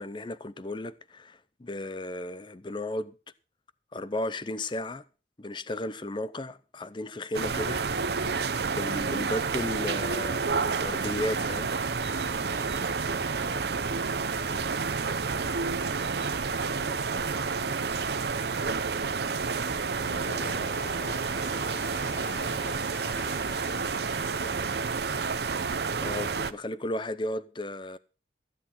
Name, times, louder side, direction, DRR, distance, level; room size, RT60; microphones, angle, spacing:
voice 1, 0.0-3.1 3.9-5.0 5.4-7.8 8.7-10.4 10.8-11.7 26.0-28.0, left 1 dB, 25° left, 0.6 m, -34 dB
sound 1, 7.3-26.5, right 4 dB, 60° right, 0.7 m, -30 dB
sound 2, 9.6-16.5, right 2 dB, 25° right, 2.4 m, -50 dB
voice 2, 12.5-15.9 16.5-20.4, equal, 80° left, 3.5 m, -53 dB
sound 3, 19.7-26.1, left 1 dB, 55° left, 3.7 m, -44 dB
15.0 x 8.3 x 5.7 m
head